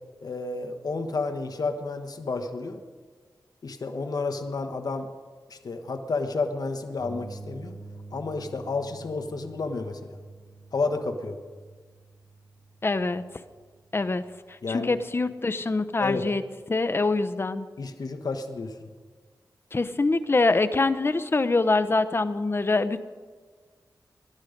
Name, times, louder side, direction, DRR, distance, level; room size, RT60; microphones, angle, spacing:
voice 1, 0.2-2.8 3.6-5.1 5.5-7.8 8.1-10.2 10.7-11.4 14.6-15.0 16.0-16.2 17.8-18.9, left 3 dB, 60° left, 6 dB, 1.2 m, -31 dB
sound 1, 7.0-14.7, right 3 dB, 70° right, 4.3 m, -47 dB
voice 2, 12.8-13.2 13.9-14.2 14.7-16.4 16.7-17.7 19.7-23.0, left 3 dB, 35° left, 12 dB, 0.8 m, -24 dB
21.5 x 11.5 x 5.2 m, 1.5 s
wide cardioid pair, 85°, 7 cm